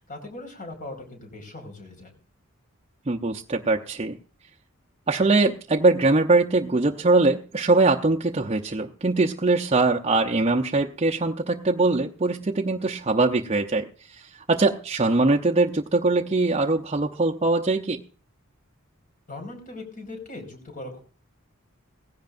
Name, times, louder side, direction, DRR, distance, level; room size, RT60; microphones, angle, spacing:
voice 1, 0.0-2.1 19.3-21.0, left 2 dB, 40° left, 4 dB, 4.9 m, -39 dB
voice 2, 3.1-4.2 5.1-18.0, right 3 dB, 30° right, 2 dB, 0.7 m, -22 dB
18.0 x 16.0 x 2.6 m, 0.39 s
head